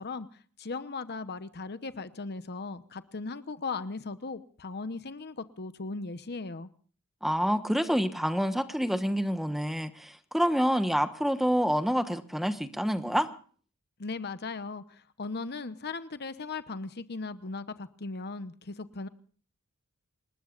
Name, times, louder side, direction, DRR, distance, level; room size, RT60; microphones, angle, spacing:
voice 1, 0.0-6.7 14.0-19.1, left 3 dB, 50° left, 12 dB, 1.0 m, -38 dB
voice 2, 7.2-13.3, equal, ahead, 9 dB, 1.2 m, -27 dB
27.5 x 20.5 x 2.5 m, 0.43 s
head